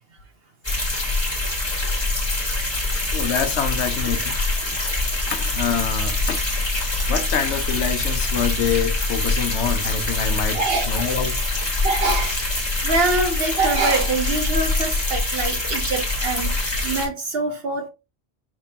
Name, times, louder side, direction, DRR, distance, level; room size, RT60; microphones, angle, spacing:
sound 1, 0.6-17.1, left 2 dB, 25° left, 1.6 m, -24 dB
voice 1, 3.1-4.8 5.3-6.4 7.1-11.4, left 7 dB, 85° left, 1.0 m, -26 dB
voice 2, 10.5-10.9 11.8-12.5 12.8-17.9, right 3 dB, 65° right, 0.9 m, -24 dB
5.0 x 3.6 x 2.7 m
omnidirectional pair, 1.1 m